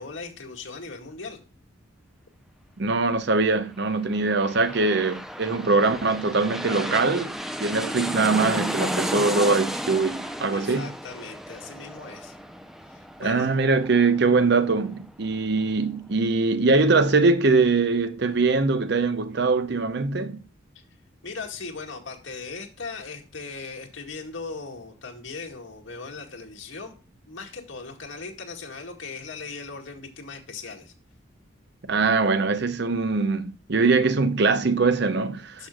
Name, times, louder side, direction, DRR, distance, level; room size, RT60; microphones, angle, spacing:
voice 1, 0.0-1.4 10.5-12.4 12.9-13.5 21.2-27.0 27.3-30.9 35.6-35.7, left 4 dB, 85° left, 2.0 m, -38 dB
voice 2, 2.8-7.3 7.6-10.9 13.2-20.4 31.9-35.7, right 3 dB, 60° right, 0.7 m, -22 dB
sound 1, 4.0-15.3 15.7-15.8, equal, ahead, 0.6 m, -33 dB
12.0 x 6.4 x 2.3 m
head